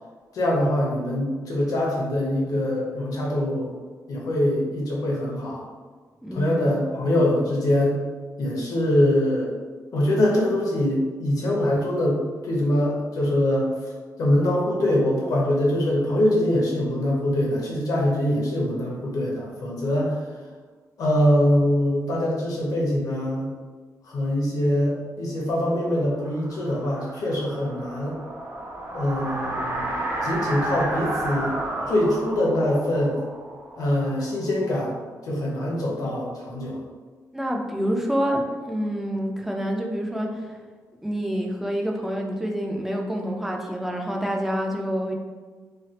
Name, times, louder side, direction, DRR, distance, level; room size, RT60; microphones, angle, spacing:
voice 1, 0.3-3.7 4.1-5.6 6.3-8.0 8.4-9.5 9.9-13.7 14.2-20.2 21.0-23.5 24.0-28.1 28.9-29.9 30.2-31.6 31.9-33.2 33.7-34.9 35.3-36.8, left 1 dB, 70° left, -3 dB, 0.8 m, -23 dB
voice 2, 6.2-6.7 37.3-40.6 41.0-45.1, equal, 5° right, 0 dB, 0.3 m, -27 dB
sound 1, 25.8-34.6, right 1 dB, 45° right, 0.6 m, -32 dB
3.2 x 2.3 x 2.8 m, 1.5 s
wide cardioid pair, 160°, 6 cm